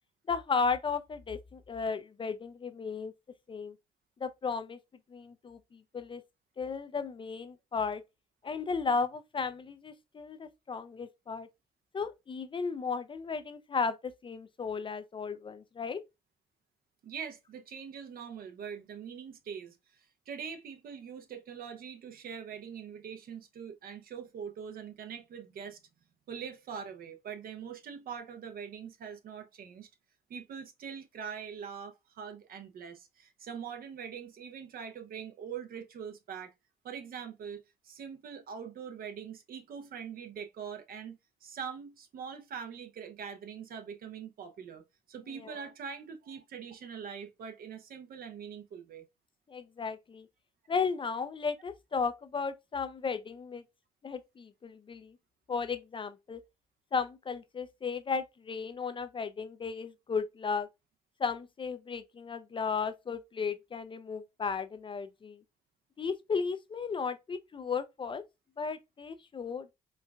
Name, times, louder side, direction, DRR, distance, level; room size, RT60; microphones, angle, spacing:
voice 1, 0.3-3.1 3.5-3.8 4.2-4.8 5.1-6.2 6.6-8.0 8.4-11.5 11.9-16.0 45.3-45.7 49.5-50.3 50.7-53.6 54.0-55.2 55.5-56.4 56.9-60.7 61.2-65.4 66.0-68.2 68.6-69.7, left 5 dB, 30° left, 0.4 m, -35 dB
voice 2, 17.0-25.8 26.3-29.9 30.3-36.5 36.8-44.8 45.1-49.0, right 7 dB, 60° right, 0.7 m, -43 dB
4.4 x 2.3 x 2.3 m
supercardioid pair, 55°, 17 cm